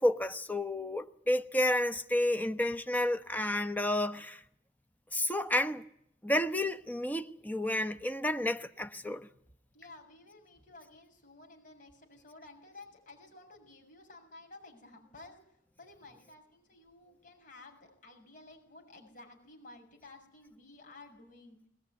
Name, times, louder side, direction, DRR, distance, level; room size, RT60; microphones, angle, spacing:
voice 1, 0.0-4.4 5.1-5.8 6.2-9.3, left 1 dB, 10° left, 1.2 m, -31 dB
voice 2, 9.7-21.6, left 2 dB, 50° left, 7.1 m, -54 dB
21.0 x 20.5 x 9.6 m
head